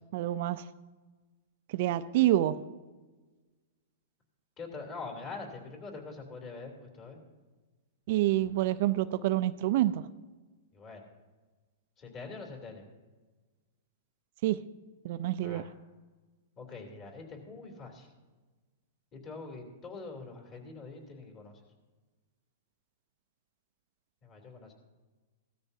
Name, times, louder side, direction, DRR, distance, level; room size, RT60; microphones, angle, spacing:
voice 1, 0.1-0.6 1.7-2.6 8.1-10.0 14.4-14.6 15.0-15.7, right 14 dB, 55° right, 12 dB, 0.5 m, -27 dB
voice 2, 4.6-7.2 10.7-11.0 12.0-12.8 15.4-15.7 16.6-18.1 19.2-21.5 24.2-24.7, left 4 dB, 30° left, 2 dB, 3.2 m, -44 dB
16.5 x 13.5 x 2.8 m, 1.3 s
hypercardioid pair, 135°, 0 cm